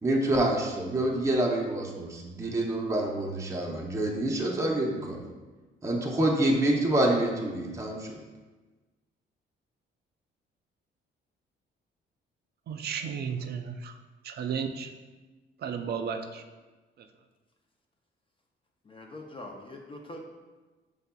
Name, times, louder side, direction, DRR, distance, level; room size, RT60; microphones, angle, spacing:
voice 1, 0.0-5.2 5.8-8.2, right 1 dB, 15° right, -1 dB, 0.6 m, -27 dB
voice 2, 12.7-13.7 14.3-14.9 15.6-16.2, right 7 dB, 55° right, 7 dB, 0.4 m, -33 dB
voice 3, 18.9-20.2, left 1 dB, 25° left, 1 dB, 0.5 m, -43 dB
5.5 x 3.4 x 2.2 m, 1.2 s
cardioid pair, 90°, 20 cm